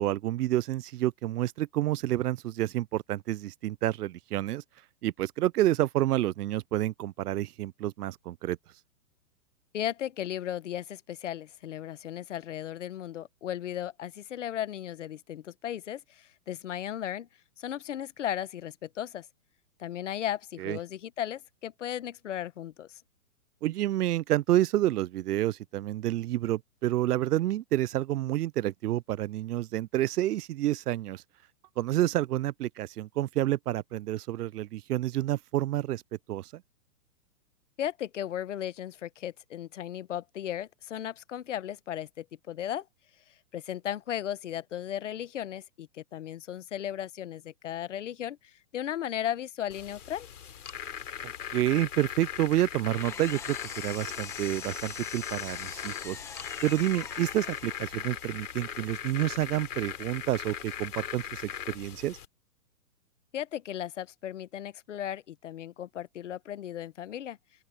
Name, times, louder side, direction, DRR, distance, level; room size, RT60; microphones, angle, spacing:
voice 1, 0.0-4.6 5.0-8.6 20.6-20.8 23.6-31.2 31.8-36.0 36.3-36.5 51.5-56.2 56.6-62.2, right 14 dB, 80° right, 0.6 m, -29 dB
voice 2, 9.7-17.3 17.6-19.3 19.8-23.0 37.8-42.9 43.5-50.3 63.3-67.4, left 11 dB, 50° left, 1.2 m, -36 dB
sound 1, 49.7-62.3, left 9 dB, 75° left, 3.5 m, -39 dB
Engine, 52.5-58.2, left 6 dB, 5° left, 1.2 m, -44 dB
open air
hypercardioid pair, 175°, 46 cm